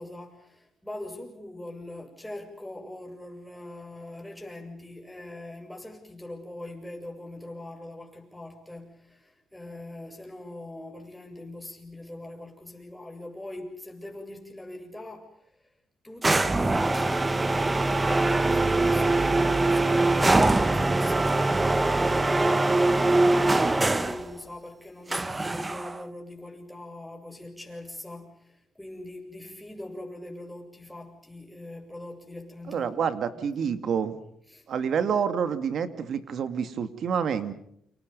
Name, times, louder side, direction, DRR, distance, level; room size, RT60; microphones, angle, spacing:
voice 1, 0.0-15.6 16.0-33.1 33.6-33.8 34.5-34.7, left 1 dB, 5° left, 3 dB, 7.6 m, -42 dB
sound 1, 16.2-24.2 25.1-26.0, right 2 dB, 20° right, 1.2 m, -23 dB
voice 2, 32.7-34.1 34.7-37.5, right 7 dB, 60° right, 11 dB, 2.3 m, -28 dB
29.5 x 27.0 x 5.4 m, 0.71 s
cardioid pair, 90°, 0 cm